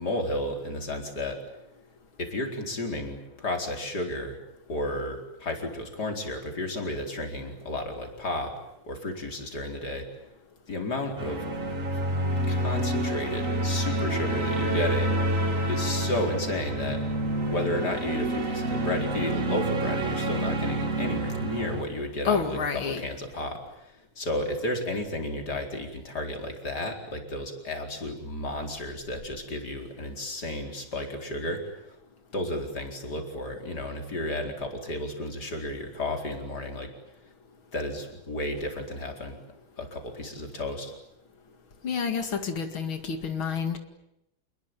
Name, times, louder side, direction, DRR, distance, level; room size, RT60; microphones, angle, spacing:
voice 1, 0.0-1.4 2.2-4.4 4.7-8.5 8.9-10.0 10.7-11.4 12.5-15.1 15.7-17.0 17.4-31.7 32.3-36.9 37.7-39.4 39.8-40.9, left 1 dB, 55° left, 3 dB, 5.0 m, -32 dB
sound 1, 11.2-21.8, right 1 dB, 40° right, 3.1 m, -28 dB
voice 2, 22.2-23.0 41.8-43.8, left 6 dB, 85° left, 6 dB, 3.1 m, -29 dB
28.5 x 21.0 x 9.2 m, 0.85 s
omnidirectional pair, 2.2 m